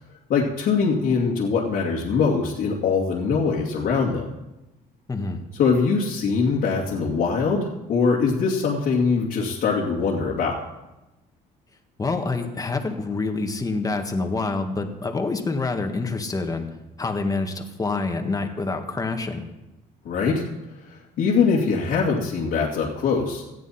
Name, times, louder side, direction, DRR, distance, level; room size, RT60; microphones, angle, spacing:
voice 1, 0.3-4.3 5.5-10.5 20.0-20.5 20.9-23.4, left 5 dB, 65° left, -4 dB, 2.5 m, -22 dB
voice 2, 5.1-5.4 12.0-16.7 17.0-19.4, left 3 dB, 20° left, 5 dB, 1.8 m, -27 dB
18.0 x 13.5 x 4.3 m, 1.0 s
cardioid pair, 110°, 17 cm